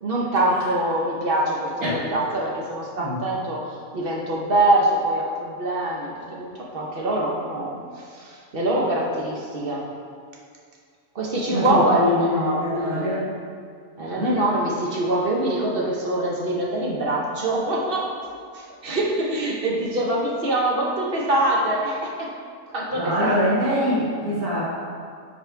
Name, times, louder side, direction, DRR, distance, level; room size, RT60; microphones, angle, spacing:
voice 1, 0.0-3.7 3.9-7.8 8.1-9.9 11.1-13.2 14.0-18.1 18.5-22.3 22.7-23.5, right 1 dB, 50° right, -3 dB, 0.8 m, -24 dB
voice 2, 11.5-13.3 14.2-14.4 22.9-24.6, left 1 dB, 90° right, -9 dB, 1.9 m, -24 dB
5.2 x 4.3 x 4.5 m, 2.1 s
omnidirectional pair, 1.6 m